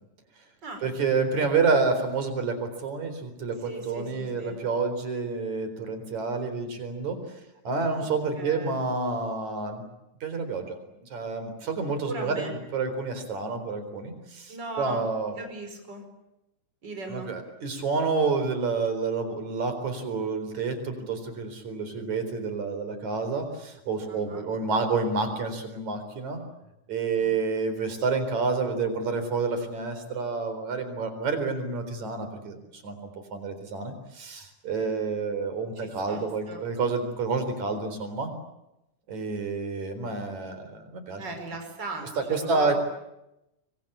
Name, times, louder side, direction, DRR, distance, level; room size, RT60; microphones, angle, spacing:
voice 1, 0.8-7.2 7.7-9.8 10.2-10.8 11.1-15.4 17.1-26.4 26.9-38.3 39.1-41.2 42.2-42.8, right 4 dB, 70° right, 8 dB, 5.5 m, -29 dB
voice 2, 3.6-4.6 8.0-8.1 8.4-8.8 12.0-12.5 14.5-15.1 15.3-16.1 16.8-17.3 24.1-24.4 27.2-27.3 35.8-36.2 36.5-36.6 41.2-42.8, right 2 dB, 35° right, 4 dB, 5.8 m, -38 dB
25.0 x 25.0 x 8.6 m, 0.89 s
omnidirectional pair, 3.4 m